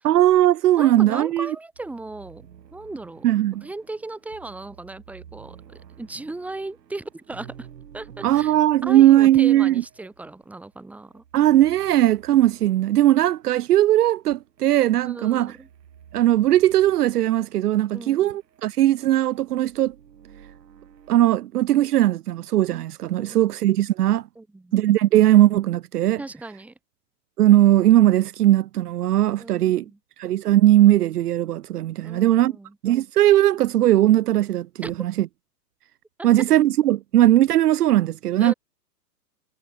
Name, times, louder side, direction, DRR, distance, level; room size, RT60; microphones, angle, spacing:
voice 1, 0.0-1.5 3.2-3.6 8.2-9.7 11.3-15.5 16.1-19.9 21.1-24.2 24.7-26.2 27.4-29.8 30.2-32.5 32.8-35.3 36.2-38.5, right 13 dB, 70° right, 0.7 m, -18 dB
voice 2, 0.7-3.3 3.6-5.6 6.0-7.7 7.9-8.5 8.8-11.2 15.0-15.7 17.9-18.3 23.2-23.5 24.4-24.8 26.2-26.7 29.4-30.0 32.0-32.8 34.8-35.0 36.2-36.3 38.4-38.5, right 2 dB, 5° right, 2.8 m, -37 dB
sound 1, 1.8-21.4, right 9 dB, 90° right, 4.2 m, -50 dB
hypercardioid pair, 165°, 49 cm